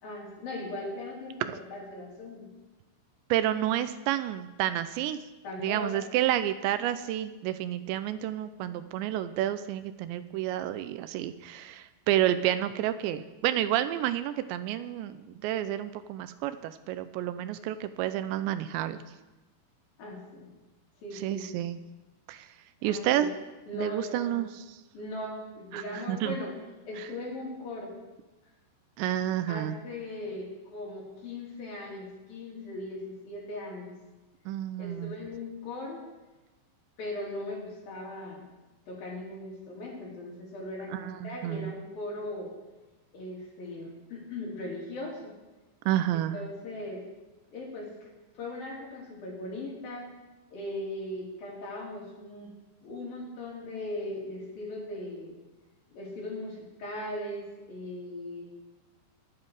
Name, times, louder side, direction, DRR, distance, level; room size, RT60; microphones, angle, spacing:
voice 1, 0.0-2.5 5.4-6.1 20.0-20.5 21.0-21.5 22.8-23.3 23.7-24.4 24.9-26.5 26.9-27.9 29.5-33.9 34.8-36.0 37.0-38.5 38.9-42.5 43.1-45.3 46.3-47.0 47.5-47.9 48.4-50.1 50.5-52.5 52.8-55.4 55.9-58.5, left 1 dB, 50° left, -3 dB, 4.9 m, -39 dB
voice 2, 3.3-5.2 5.6-19.0 21.2-21.8 22.3-22.5 22.8-23.3 23.7-24.7 25.7-26.4 27.0-27.1 29.0-29.8 34.5-35.1 40.9-41.7 45.9-46.4, right 12 dB, 80° right, 12 dB, 2.8 m, -30 dB
23.0 x 9.7 x 4.8 m, 1.1 s
omnidirectional pair, 5.3 m